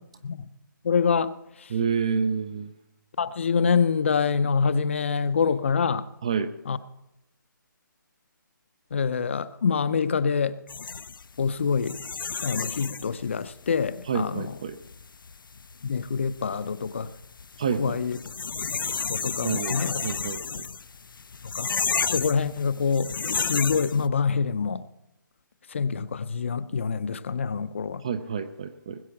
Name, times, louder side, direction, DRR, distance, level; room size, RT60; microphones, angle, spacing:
voice 1, 0.8-1.3 1.6-1.7 3.2-6.1 6.7-6.8 8.9-10.6 11.4-12.0 12.4-14.5 15.8-17.1 17.8-18.2 18.8-20.0 21.5-21.7 22.1-23.1 23.4-24.8 25.7-28.0, left 5 dB, 35° left, 0.6 m, -26 dB
voice 2, 1.7-2.7 6.2-6.5 14.0-14.8 17.6-18.0 19.4-20.7 28.0-29.0, right 6 dB, 15° right, 0.4 m, -28 dB
sound 1, 10.7-24.1, left 5 dB, 75° left, 0.7 m, -32 dB
20.0 x 7.5 x 5.8 m
hypercardioid pair, 170°, 11 cm